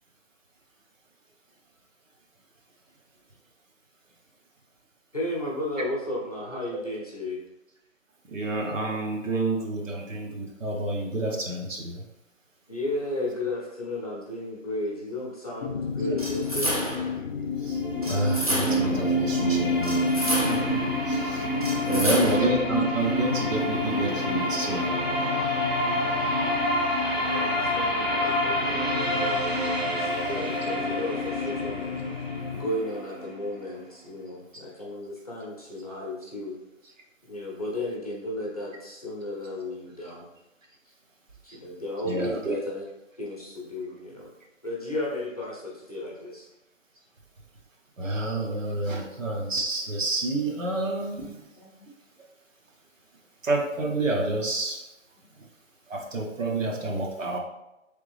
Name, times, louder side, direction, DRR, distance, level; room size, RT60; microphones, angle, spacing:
voice 1, 5.1-7.4 12.7-17.0 21.7-22.5 27.1-31.9 32.5-36.6 37.3-40.2 41.4-42.9 43.2-44.3 44.6-46.5 51.2-51.9, left 1 dB, 30° left, -4 dB, 0.7 m, -34 dB
voice 2, 8.3-12.0 17.6-17.8 18.1-20.0 20.2-20.8 21.1-21.4 21.8-24.8 42.0-42.6 48.0-51.4 53.4-54.8 55.9-57.4, right 2 dB, 75° right, 0 dB, 1.2 m, -29 dB
sound 1, 15.6-32.7, left 7 dB, 65° left, 0.6 m, -33 dB
sound 2, 16.2-17.2 18.0-19.0 19.8-20.8 21.6-22.6, equal, 30° right, 0.6 m, -30 dB
sound 3, 17.5-33.5, equal, 50° right, 1.1 m, -28 dB
3.9 x 3.5 x 3.3 m, 0.91 s
hypercardioid pair, 175°, 39 cm